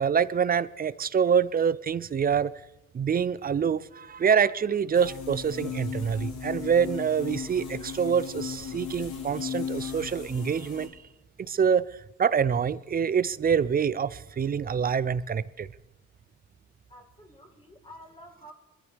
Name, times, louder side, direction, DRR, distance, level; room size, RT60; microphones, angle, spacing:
voice 1, 0.0-2.5 2.9-10.9 11.4-11.9 12.2-15.7, right 7 dB, 30° right, 0.5 m, -26 dB
sound 1, 4.9-10.9, left 7 dB, 80° left, 3.5 m, -36 dB
voice 2, 16.9-18.5, equal, 20° left, 2.4 m, -49 dB
21.5 x 14.0 x 3.4 m
cardioid pair, 90°, 30 cm